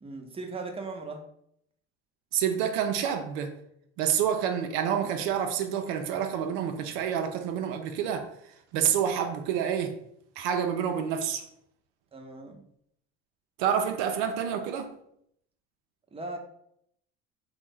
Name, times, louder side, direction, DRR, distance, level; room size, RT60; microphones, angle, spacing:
voice 1, 0.0-1.3 12.1-12.6 16.1-16.4, right 3 dB, 20° right, 0.7 m, -38 dB
voice 2, 2.3-3.5 4.0-8.3 8.7-9.9 10.4-11.5 13.6-14.9, right 8 dB, 80° right, 0.5 m, -28 dB
3.0 x 2.1 x 3.4 m
supercardioid pair, 75°, 31 cm